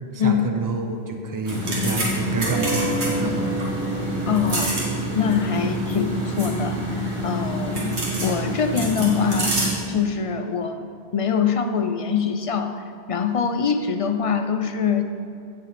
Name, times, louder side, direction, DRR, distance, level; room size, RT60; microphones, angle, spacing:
voice 1, 0.1-3.5, right 2 dB, 20° right, 4 dB, 0.7 m, -28 dB
sound 1, 1.4-9.7, right 1 dB, 85° right, 2.3 m, -26 dB
sound 2, 2.5-7.5 7.8-8.2, right 1 dB, 50° right, 1.4 m, -32 dB
voice 2, 4.3-4.8 5.2-6.8 7.2-9.6 9.9-12.8 13.1-15.0, left 7 dB, 40° left, 8 dB, 0.5 m, -24 dB
16.0 x 6.8 x 4.2 m, 2.5 s
omnidirectional pair, 1.1 m